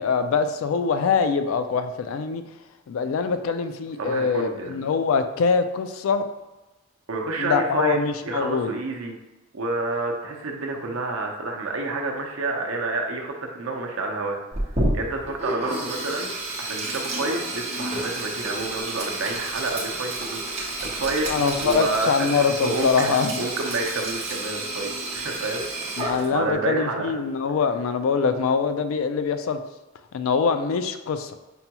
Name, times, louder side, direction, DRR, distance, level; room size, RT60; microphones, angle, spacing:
voice 1, 0.0-2.4 2.9-6.2 7.4-8.7 21.3-23.5 26.0-29.6 30.1-31.4, left 5 dB, 75° left, 9 dB, 0.3 m, -23 dB
voice 2, 4.0-4.8 7.1-8.0 8.2-9.2 9.5-14.4 14.9-16.3 16.6-21.3 21.6-25.6 26.0-27.1, right 2 dB, 70° right, 2 dB, 0.6 m, -29 dB
Sink (filling or washing), 14.5-26.5, right 2 dB, 30° right, 0.8 m, -30 dB
5.4 x 2.3 x 2.9 m, 1.0 s
head